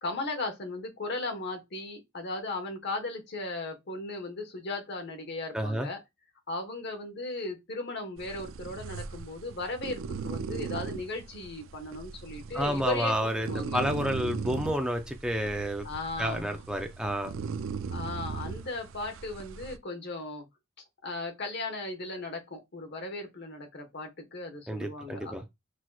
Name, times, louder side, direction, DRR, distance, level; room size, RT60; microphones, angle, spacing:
voice 1, 0.0-6.0 6.5-13.8 15.8-16.6 17.9-20.5 21.0-25.4, left 2 dB, 55° left, 1.2 m, -37 dB
voice 2, 5.5-5.9 12.5-15.9 16.2-17.3 24.7-25.4, equal, 5° right, 0.4 m, -30 dB
sound 1, 8.2-19.8, right 5 dB, 75° right, 0.4 m, -39 dB
6.1 x 2.9 x 2.3 m
head